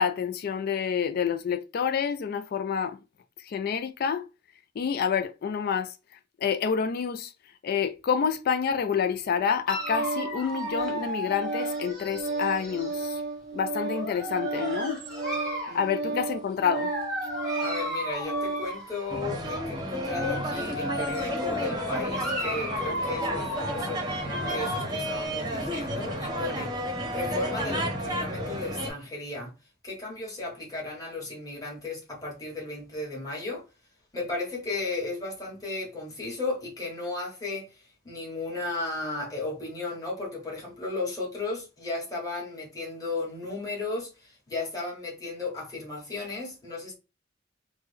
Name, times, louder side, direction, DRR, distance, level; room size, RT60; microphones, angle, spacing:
voice 1, 0.0-3.0 3.4-4.3 4.8-5.9 6.4-7.3 7.6-13.2 13.5-15.0 15.7-16.9, left 7 dB, 55° left, 0.3 m, -28 dB
Organ, 9.3-18.8, right 3 dB, 55° right, 0.4 m, -33 dB
Dog, 9.7-13.1 13.9-15.8 16.6-19.2 19.9-24.8, equal, ahead, 1.2 m, -35 dB
voice 2, 15.7-16.2 17.6-24.1 24.5-26.7 27.1-29.5 29.8-33.6 34.1-46.9, left 3 dB, 20° left, 1.5 m, -35 dB
sound 1, 19.1-28.9, equal, 25° right, 0.8 m, -32 dB
3.3 x 2.1 x 3.3 m
head